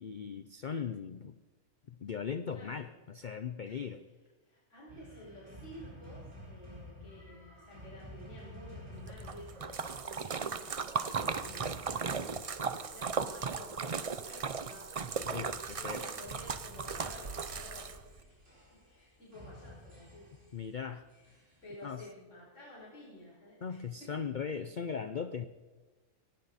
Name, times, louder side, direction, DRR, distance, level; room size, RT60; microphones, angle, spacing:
voice 1, 0.0-1.4 1.9-4.0 15.3-16.0 20.5-21.1 21.8-22.0 23.6-25.5, left 6 dB, 70° left, 11 dB, 0.4 m, -38 dB
voice 2, 2.5-2.8 3.6-4.0 4.4-15.2 15.7-18.3 18.8-20.3 21.6-24.1, equal, 50° left, -6 dB, 5.7 m, -52 dB
sound 1, 4.9-13.3 15.1-21.9, left 1 dB, 40° right, 5.0 m, -51 dB
Splash splatter, 9.1-18.2, right 5 dB, 65° right, 0.3 m, -37 dB
17.5 x 16.5 x 4.2 m, 1.3 s
omnidirectional pair, 1.6 m